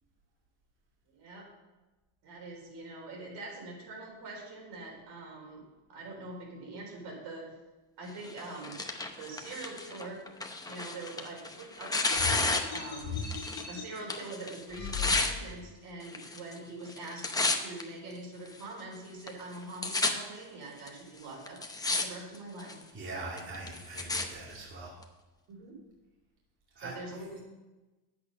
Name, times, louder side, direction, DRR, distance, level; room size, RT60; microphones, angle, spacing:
voice 1, 1.1-1.5 2.2-5.6 5.9-7.5 8.0-8.7 9.1-10.2 10.7-13.2 13.7-21.6 22.0-22.8 25.5-25.8 26.8-27.4, right 2 dB, 55° right, -1 dB, 4.0 m, -44 dB
Tearing, 8.2-13.7 14.0-15.3 16.1-16.6 16.9-17.8 18.5-18.6 19.3-19.4 19.5-20.1 20.9-21.0 21.5-22.0 22.3-22.8 23.4-24.2 25.0-25.1, left 3 dB, 10° left, 0.7 m, -32 dB
sound 1, 12.1-13.8 14.7-15.7, left 5 dB, 35° left, 3.9 m, -37 dB
voice 2, 22.9-25.0 26.7-26.9, right 3 dB, 25° right, -5 dB, 2.6 m, -41 dB
10.5 x 8.5 x 5.4 m, 1.1 s
cardioid pair, 145°, 47 cm